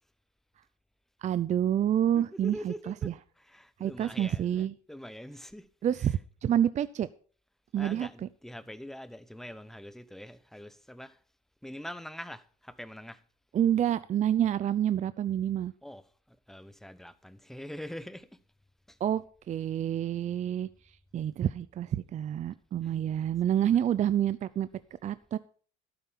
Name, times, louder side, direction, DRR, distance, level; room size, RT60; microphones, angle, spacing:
voice 1, 1.2-3.1 3.8-4.7 5.8-7.1 7.7-8.1 13.5-15.7 19.0-19.2 19.5-20.7 21.1-24.7 25.0-25.4, right 10 dB, 40° right, 0.5 m, -28 dB
voice 2, 2.1-6.2 7.8-11.2 11.6-13.2 15.8-18.4 18.9-19.0 22.8-22.9 23.5-23.7, equal, ahead, 0.9 m, -44 dB
12.0 x 8.7 x 5.6 m
supercardioid pair, 85°, 18 cm